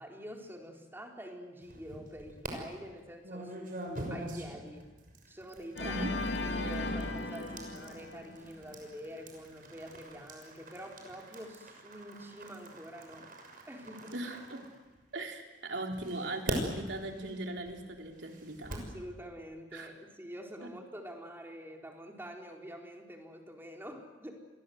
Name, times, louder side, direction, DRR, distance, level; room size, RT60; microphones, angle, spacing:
voice 1, 0.0-4.9 5.3-6.1 6.4-13.3 13.7-14.1 18.7-24.4, equal, 15° right, 1 dB, 3.9 m, -46 dB
sound 1, 1.6-2.5 3.2-15.3 15.9-19.0, right 1 dB, 50° right, 6.1 m, -44 dB
Organ, 5.7-8.9, left 2 dB, 75° left, 3.1 m, -36 dB
voice 2, 5.8-6.2 14.1-14.7 15.1-18.7 19.7-19.9 20.6-20.7, right 2 dB, 75° right, 2 dB, 3.7 m, -39 dB
29.0 x 22.5 x 7.9 m, 1.2 s
head